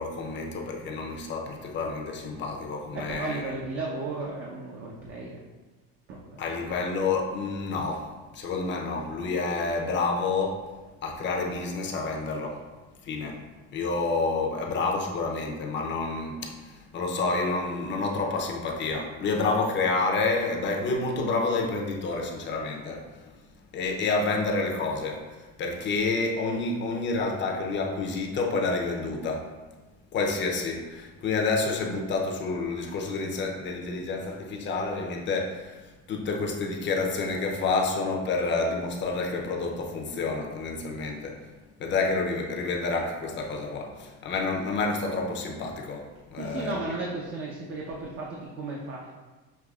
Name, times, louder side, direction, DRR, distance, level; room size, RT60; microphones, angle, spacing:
voice 1, 0.0-3.6 6.4-10.6 11.0-12.6 13.0-13.4 13.7-23.4 23.7-29.5 30.1-41.5 41.8-46.9, left 3 dB, 40° left, 1 dB, 0.7 m, -29 dB
voice 2, 2.9-5.4 6.1-6.6 46.4-49.1, right 3 dB, 45° right, -3 dB, 0.7 m, -35 dB
6.7 x 2.8 x 2.4 m, 1.2 s
cardioid pair, 130°, 30 cm